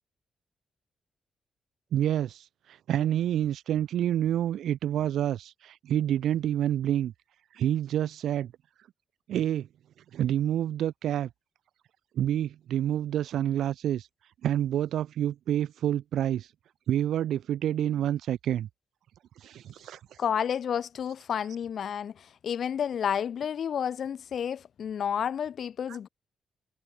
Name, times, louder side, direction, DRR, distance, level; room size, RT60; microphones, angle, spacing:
voice 1, 1.9-7.1 7.5-8.5 9.3-9.7 10.1-11.3 12.1-14.1 14.4-16.5 16.9-18.7 19.4-20.2 25.9-26.0, right 11 dB, 90° right, 1.7 m, -28 dB
voice 2, 20.2-26.1, left 8 dB, 50° left, 6.3 m, -31 dB
wide cardioid pair, 175°, 0 cm